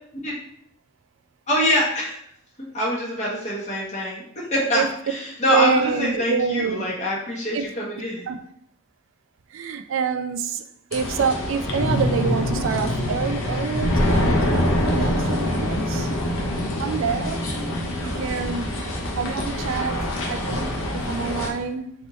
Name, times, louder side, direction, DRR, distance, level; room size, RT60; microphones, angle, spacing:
voice 1, 1.5-2.2 2.7-8.2, left 1 dB, 35° left, 1.2 m, -24 dB
voice 2, 5.5-6.9 7.5-7.7 8.3-8.4 9.5-10.6 10.9-16.1 16.6-17.4 18.0-18.8 19.2-21.9, right 6 dB, 80° right, 0.3 m, -27 dB
sound 1, 10.9-21.5, left 1 dB, 85° left, 0.8 m, -25 dB
3.4 x 2.9 x 4.0 m
head